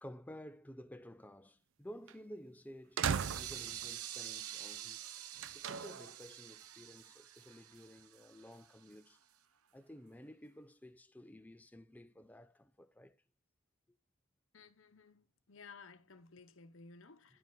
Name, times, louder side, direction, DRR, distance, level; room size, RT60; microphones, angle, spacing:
voice 1, 0.0-5.0 5.5-9.2 9.7-13.2, equal, 5° left, 0.4 m, -53 dB
sound 1, 2.1-2.2 3.0-3.9 5.4-6.1, right 7 dB, 60° right, 0.4 m, -37 dB
sound 2, 3.1-8.9, right 11 dB, 80° right, 0.7 m, -47 dB
voice 2, 14.5-17.4, left 4 dB, 60° left, 0.9 m, -57 dB
10.5 x 5.3 x 3.9 m
head